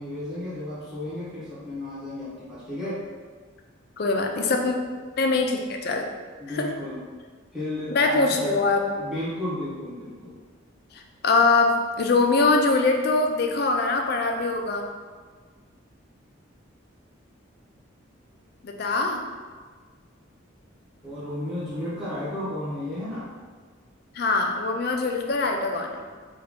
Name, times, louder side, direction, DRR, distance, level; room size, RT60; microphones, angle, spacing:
voice 1, 0.0-3.0 4.3-4.8 6.4-7.0 7.5-10.4 21.0-23.3, left 1 dB, 5° right, -11 dB, 1.2 m, -33 dB
voice 2, 4.0-4.8 5.2-6.0 6.5-6.7 7.9-8.8 10.9-14.9 18.6-19.2 24.1-26.0, left 3 dB, 50° left, 3 dB, 0.4 m, -23 dB
3.4 x 2.3 x 3.5 m, 1.5 s
head